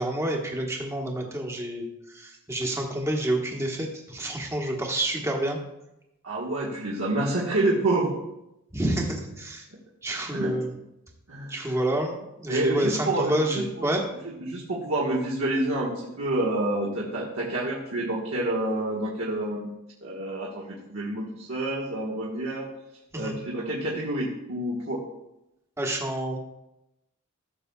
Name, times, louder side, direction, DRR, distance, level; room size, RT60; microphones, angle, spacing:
voice 1, 0.0-1.8 2.1-5.6 8.7-9.6 10.0-10.7 11.5-14.0 23.2-23.4 25.8-26.4, right 1 dB, 15° right, -1 dB, 1.3 m, -28 dB
voice 2, 6.2-8.1 9.7-9.8 10.3-10.6 11.3-11.5 12.5-13.9 14.2-19.7 20.0-22.6 23.1-25.0, right 1 dB, 70° right, -4 dB, 1.4 m, -28 dB
14.5 x 6.7 x 2.3 m, 0.89 s
head